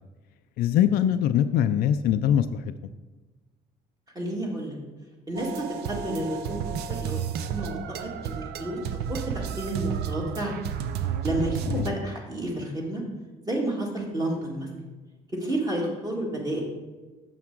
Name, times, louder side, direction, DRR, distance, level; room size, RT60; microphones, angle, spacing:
voice 1, 0.6-2.7 11.7-11.9, left 10 dB, 65° left, 10 dB, 0.4 m, -23 dB
voice 2, 4.2-4.8 5.3-6.6 7.0-7.2 7.5-8.8 9.1-10.6 11.2-11.6 11.8-13.0 13.4-14.7 15.4-16.6, right 1 dB, 20° right, -2 dB, 2.0 m, -30 dB
sound 1, 5.4-11.9, right 8 dB, 80° right, 0.6 m, -32 dB
7.3 x 5.9 x 4.6 m, 1.3 s
cardioid pair, 110°, 17 cm